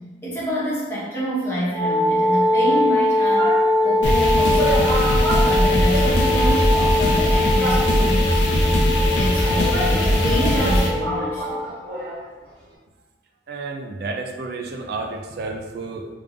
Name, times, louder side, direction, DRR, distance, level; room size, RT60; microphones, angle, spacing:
voice 1, 0.0-3.5 3.8-5.0 5.5-11.6, equal, 15° left, -8 dB, 1.0 m, -27 dB
Wind instrument woodwind instrument, 1.7-11.7, left 2 dB, 20° right, 0.6 m, -22 dB
sound 1, 2.7-3.7 4.2-4.3 4.5-6.6 6.8-6.9 7.6-8.3 9.1-12.2 12.5-12.6, right 1 dB, 85° right, 1.4 m, -29 dB
sound 2, 4.0-10.9, equal, 75° left, 0.7 m, -20 dB
voice 2, 13.5-16.1, right 3 dB, 60° right, 3 dB, 0.4 m, -31 dB
3.4 x 3.3 x 2.5 m, 1.2 s
head